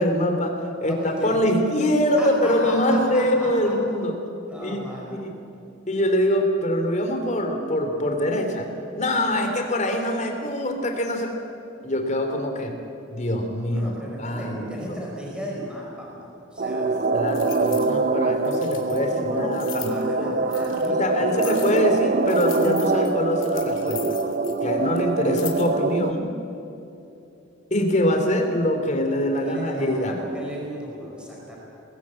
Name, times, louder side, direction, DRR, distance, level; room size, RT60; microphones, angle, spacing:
voice 1, 0.0-4.1 4.6-4.8 5.1-5.3 5.9-8.7 8.9-11.3 11.8-12.8 13.1-15.0 17.1-20.4 20.9-24.2 24.6-26.3 27.7-30.2, left 1 dB, 35° left, 4 dB, 3.0 m, -24 dB
voice 2, 0.9-1.4 2.2-3.7 4.5-5.2 13.7-16.9 19.0-19.5 19.8-21.7 29.3-31.6, equal, 5° right, -3 dB, 5.2 m, -35 dB
sound 1, 16.6-26.1, right 3 dB, 40° right, 0.9 m, -24 dB
sound 2, 17.0-17.9 18.4-19.0 19.5-20.0 20.5-20.9 21.4-21.9 22.3-24.7 25.0-25.1 25.3-25.7, left 13 dB, 70° left, 2.7 m, -39 dB
23.0 x 19.5 x 8.7 m, 2.9 s
head